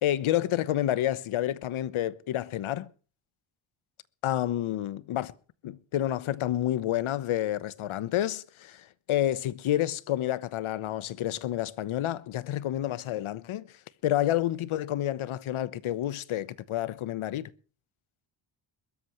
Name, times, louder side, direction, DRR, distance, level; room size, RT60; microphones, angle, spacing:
voice 1, 0.0-2.9 4.2-5.3 5.6-13.7 14.0-17.5, left 13 dB, 70° left, 1.1 m, -29 dB
22.0 x 13.5 x 3.1 m
cardioid pair, 110°, 50 cm